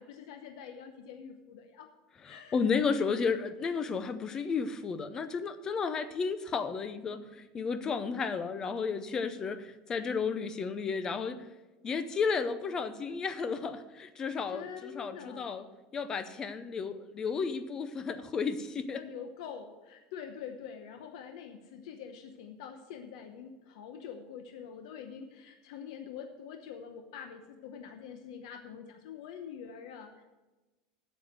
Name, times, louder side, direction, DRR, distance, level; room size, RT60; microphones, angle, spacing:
voice 1, 0.0-1.9 2.2-2.6 14.5-15.7 18.9-30.2, left 7 dB, 70° left, 6 dB, 0.9 m, -45 dB
voice 2, 2.2-11.4 11.8-15.6 15.9-19.0, left 5 dB, 20° left, 12 dB, 0.6 m, -33 dB
8.7 x 7.0 x 7.7 m, 1.1 s
cardioid pair, 175°, 3 cm